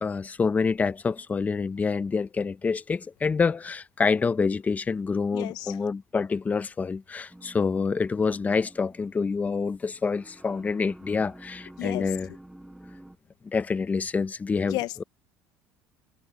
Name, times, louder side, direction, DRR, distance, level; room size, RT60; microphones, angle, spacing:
voice 1, 0.0-12.3 13.4-15.0, left 5 dB, 20° left, 1.0 m, -27 dB
voice 2, 5.3-5.8 11.8-12.1 14.7-15.0, left 19 dB, 65° left, 1.0 m, -32 dB
sound 1, 7.3-13.2, right 1 dB, 5° right, 7.0 m, -49 dB
supercardioid pair, 110°, 7 cm